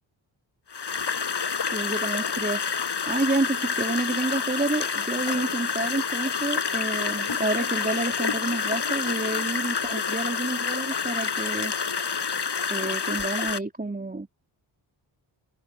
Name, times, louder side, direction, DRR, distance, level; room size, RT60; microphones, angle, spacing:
sound 1, 0.7-13.6, left 6 dB, 55° left, 7.1 m, -28 dB
voice 1, 1.7-11.7 12.7-14.4, right 2 dB, 20° right, 4.2 m, -29 dB
cardioid pair, 70°, 49 cm